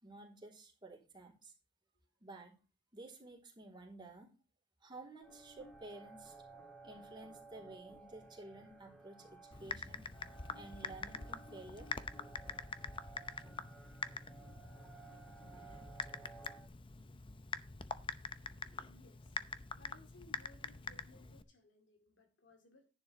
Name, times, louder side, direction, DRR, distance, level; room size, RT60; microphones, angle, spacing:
voice 1, 0.0-1.5 2.2-2.6 2.9-4.3 4.8-6.3 6.8-10.0 10.5-11.9, right 2 dB, 25° right, 3.3 m, -53 dB
sound 1, 5.2-16.7, right 3 dB, 5° left, 3.1 m, -56 dB
Typing, 9.5-21.4, left 4 dB, 30° left, 0.7 m, -45 dB
voice 2, 18.8-19.4 19.7-22.9, left 2 dB, 75° left, 2.4 m, -63 dB
10.5 x 9.8 x 3.2 m
head